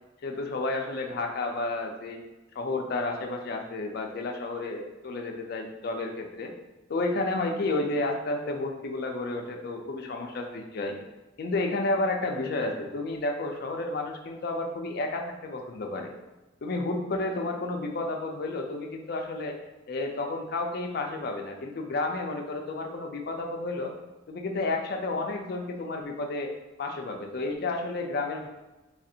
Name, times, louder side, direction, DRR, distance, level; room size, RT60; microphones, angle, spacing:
voice 1, 0.2-2.2 2.6-6.5 6.9-11.0 11.4-16.1 16.6-19.6 19.9-23.9 24.3-26.5 26.8-28.5, left 2 dB, 55° left, 3 dB, 0.4 m, -31 dB
3.3 x 2.4 x 2.7 m, 1.1 s
head